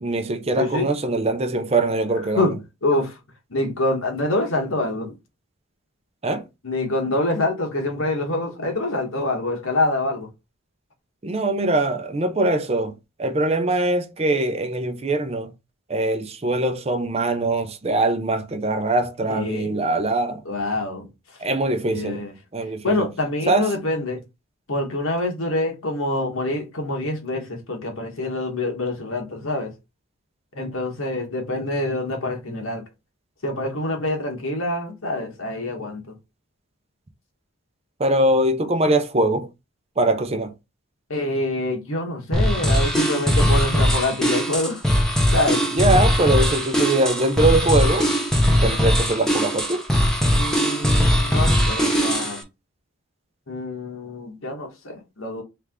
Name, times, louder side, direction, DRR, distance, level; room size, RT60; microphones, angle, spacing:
voice 1, 0.0-2.5 6.2-6.4 11.2-15.5 15.9-20.4 21.4-22.2 22.5-23.1 23.5-23.7 38.0-39.5 40.0-40.5 45.7-48.1 48.6-49.8, right 2 dB, 30° right, 0.5 m, -22 dB
voice 2, 0.6-0.9 2.3-2.5 2.8-3.2 3.5-5.1 6.6-10.3 19.3-19.8 20.4-21.1 21.9-22.3 22.8-24.2 24.7-29.7 30.5-32.8 33.4-36.0 41.1-44.8 45.3-45.7 50.3-52.4 53.5-55.4, left 2 dB, 80° left, 1.4 m, -26 dB
sound 1, 42.3-52.4, equal, 5° left, 0.7 m, -20 dB
3.4 x 3.3 x 3.6 m
head